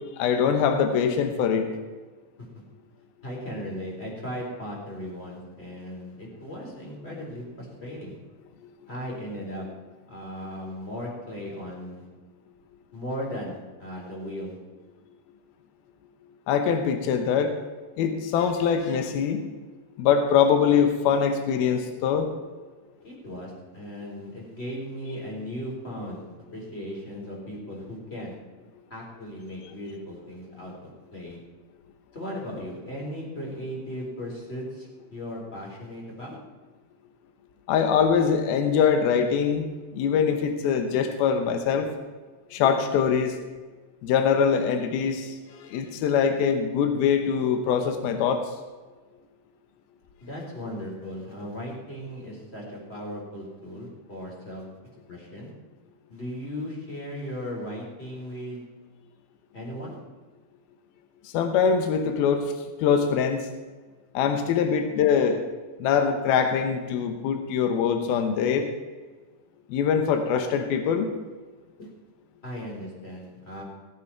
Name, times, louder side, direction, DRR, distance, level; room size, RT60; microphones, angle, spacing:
voice 1, 0.2-1.7 16.5-17.6 18.0-19.4 20.0-22.3 37.7-39.7 39.9-41.9 42.5-43.4 44.0-48.4 61.2-62.5 62.8-63.5 64.1-65.4 65.8-68.7 69.7-71.1, left 7 dB, 80° left, 6 dB, 2.9 m, -23 dB
voice 2, 3.2-8.2 8.9-9.7 10.1-12.0 12.9-14.6 23.0-26.2 26.5-28.4 28.9-31.4 32.1-36.4 50.2-54.6 55.1-55.5 56.1-58.6 59.5-60.0 71.8-71.9 72.4-73.6, equal, 15° left, -2 dB, 3.7 m, -37 dB
17.5 x 8.2 x 5.8 m, 1.4 s
omnidirectional pair, 4.3 m